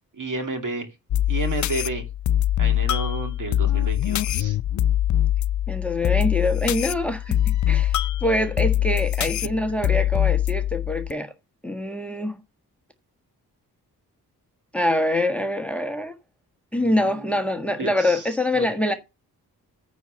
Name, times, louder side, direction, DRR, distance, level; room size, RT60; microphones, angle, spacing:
voice 1, 0.1-0.9 1.3-2.1 2.6-4.6 16.8-17.4 17.8-19.0, right 3 dB, 50° right, 2.5 m, -32 dB
sound 1, 1.1-11.1, left 12 dB, 50° left, 0.4 m, -23 dB
voice 2, 5.7-7.9 8.2-11.3 11.6-12.4 14.7-16.1 16.7-18.9, left 1 dB, 5° left, 1.5 m, -25 dB
9.3 x 4.3 x 6.7 m
supercardioid pair, 45°, 40 cm